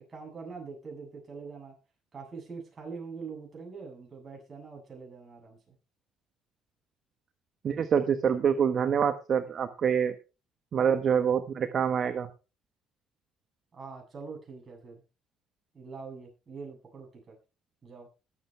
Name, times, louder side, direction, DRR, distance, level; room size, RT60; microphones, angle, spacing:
voice 1, 0.1-1.7 2.1-5.7 13.7-15.0 15.7-17.4 17.8-18.1, right 5 dB, 30° right, 0 dB, 7.9 m, -43 dB
voice 2, 7.6-10.1 10.7-12.3, right 7 dB, 50° right, 9 dB, 1.2 m, -26 dB
21.0 x 8.3 x 3.3 m, 0.31 s
cardioid pair, 110°, 0 cm